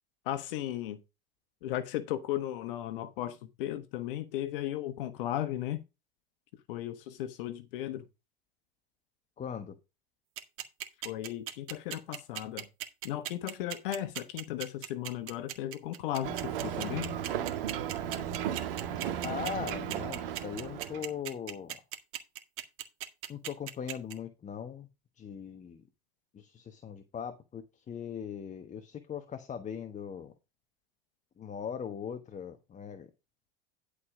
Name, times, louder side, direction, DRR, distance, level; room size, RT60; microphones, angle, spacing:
voice 1, 0.2-1.0 1.6-5.8 6.7-8.0 11.0-12.7 13.0-17.1, left 13 dB, 65° left, 1.2 m, -36 dB
voice 2, 9.4-9.7 19.2-21.8 23.3-24.9 25.2-25.8 26.3-30.3 31.4-33.1, left 8 dB, 25° left, 1.2 m, -40 dB
sound 1, 10.4-24.1, right 13 dB, 45° right, 1.9 m, -37 dB
Ocean, 16.2-21.1, right 9 dB, 65° right, 1.6 m, -35 dB
11.0 x 5.0 x 5.0 m
hypercardioid pair, 90°, 29 cm